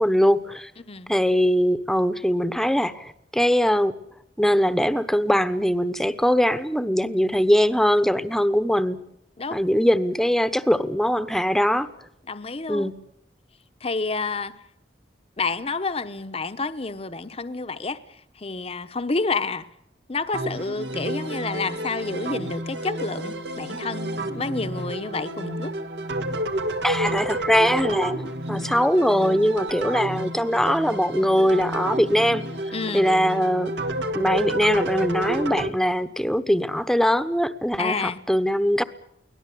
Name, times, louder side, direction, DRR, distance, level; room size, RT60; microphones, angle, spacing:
voice 1, 0.0-0.7 1.1-3.9 4.4-9.0 9.5-11.9 12.7-12.9 26.8-28.1 28.5-32.4 32.9-33.7 34.1-38.0 38.3-38.8, equal, ahead, 1.0 m, -21 dB
voice 2, 0.8-1.1 9.4-9.6 12.3-12.9 13.8-14.5 15.4-18.0 18.4-19.7 20.1-25.7 32.7-33.1 37.8-38.2, left 3 dB, 35° left, 0.9 m, -29 dB
sound 1, 20.3-35.7, right 1 dB, 80° right, 1.9 m, -30 dB
24.0 x 17.5 x 8.5 m
head